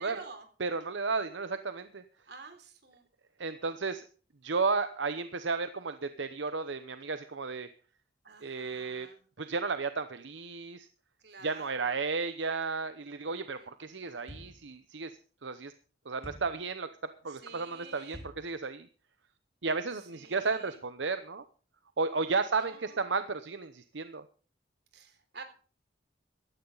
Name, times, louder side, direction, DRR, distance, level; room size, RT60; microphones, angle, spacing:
voice 1, 0.0-0.5 2.3-3.0 8.2-9.2 11.2-12.1 13.6-14.6 17.3-18.3 20.1-20.8 22.6-23.0 24.9-25.4, right 4 dB, 60° right, 7 dB, 3.7 m, -50 dB
voice 2, 0.6-2.0 3.4-4.1 4.4-7.7 8.4-9.1 9.4-10.9 11.4-15.1 15.4-15.7 16.1-16.9 17.2-18.9 19.6-21.4 22.0-24.2, right 4 dB, 85° right, 10 dB, 0.9 m, -33 dB
sound 1, 14.3-14.7 16.2-16.6 18.1-18.5, equal, 35° left, 4.7 m, -47 dB
16.0 x 13.5 x 4.0 m, 0.40 s
head